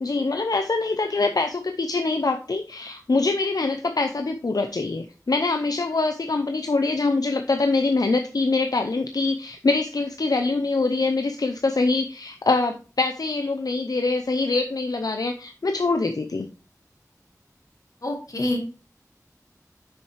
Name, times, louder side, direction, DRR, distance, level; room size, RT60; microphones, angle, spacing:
voice 1, 0.0-16.5, left 3 dB, 90° left, 6 dB, 0.6 m, -24 dB
voice 2, 18.0-18.7, left 1 dB, 65° left, 2 dB, 1.8 m, -27 dB
7.1 x 6.5 x 3.3 m, 0.35 s
wide cardioid pair, 55°, 6 cm